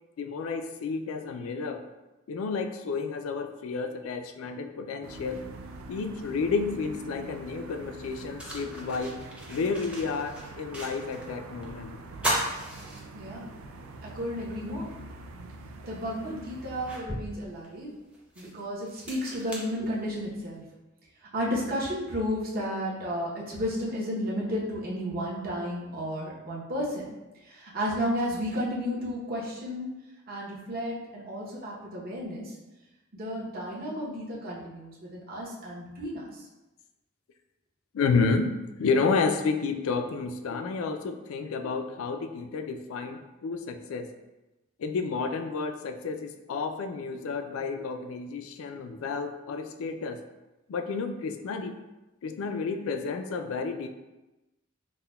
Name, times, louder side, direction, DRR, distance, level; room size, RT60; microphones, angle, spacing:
voice 1, 0.2-1.8 2.3-5.4 5.9-9.2 9.5-12.0 37.9-38.5 38.8-44.1 44.8-50.2 50.7-51.7 52.2-53.9, left 4 dB, 80° left, 7 dB, 0.3 m, -31 dB
sound 1, 5.0-17.0, right 2 dB, 80° right, 0.4 m, -45 dB
sound 2, 7.9-11.3 11.6-11.7 12.1-13.6 14.1-14.2 15.6-15.7 16.3-20.5, right 1 dB, 5° right, 0.6 m, -36 dB
voice 2, 13.1-13.5 14.0-14.9 15.8-17.9 18.4-20.6 21.3-27.1 27.4-29.9 30.3-32.5 33.1-36.4, equal, 50° right, -5 dB, 0.8 m, -32 dB
5.5 x 2.1 x 2.2 m, 1.0 s
head